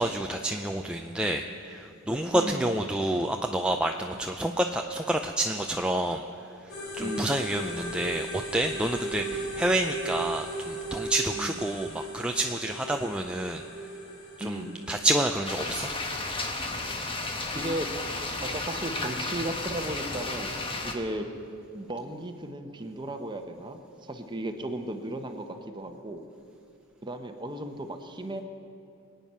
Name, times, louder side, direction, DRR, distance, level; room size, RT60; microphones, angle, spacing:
voice 1, 0.0-6.2 7.0-13.6 14.4-15.9, right 1 dB, 5° right, 3 dB, 0.4 m, -28 dB
voice 2, 2.3-2.7 4.1-4.3 7.0-7.5 9.3-9.5 11.3-11.8 14.4-14.9 17.5-17.9 18.4-21.3 21.7-26.2 27.0-28.4, right 1 dB, 20° right, 6 dB, 1.0 m, -35 dB
sound 1, 6.7-20.4, right 1 dB, 80° left, 3.6 m, -38 dB
sound 2, 15.4-20.9, left 2 dB, 25° left, 1.2 m, -33 dB
23.5 x 9.1 x 5.5 m, 2.5 s
head